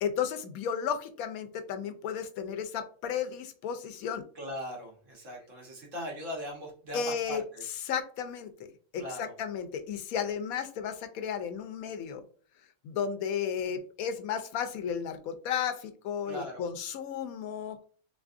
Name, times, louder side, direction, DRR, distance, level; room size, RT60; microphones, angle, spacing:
voice 1, 0.0-4.2 6.9-7.4 7.9-8.7 8.9-12.2 12.8-17.8, left 7 dB, 90° left, 8 dB, 1.1 m, -33 dB
voice 2, 4.4-7.6 8.9-9.4 16.3-16.7, equal, 65° right, -1 dB, 1.6 m, -39 dB
3.9 x 3.5 x 2.5 m, 0.42 s
omnidirectional pair, 1.5 m